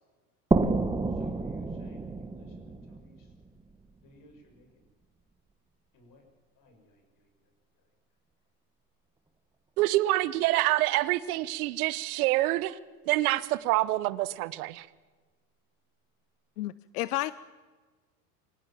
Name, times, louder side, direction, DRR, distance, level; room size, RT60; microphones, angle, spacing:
sound 1, 0.5-4.0, right 3 dB, 10° right, 1.3 m, -30 dB
voice 1, 1.1-3.3 4.0-4.9 5.9-6.2 6.5-7.5 7.7-7.8, equal, 45° left, 5 dB, 6.7 m, -57 dB
voice 2, 9.8-12.8 13.1-14.9, right 17 dB, 70° right, 18 dB, 1.1 m, -26 dB
voice 3, 16.6-17.3, left 17 dB, 75° left, 18 dB, 0.8 m, -31 dB
24.0 x 17.5 x 7.3 m, 1.4 s
hypercardioid pair, 105°, 46 cm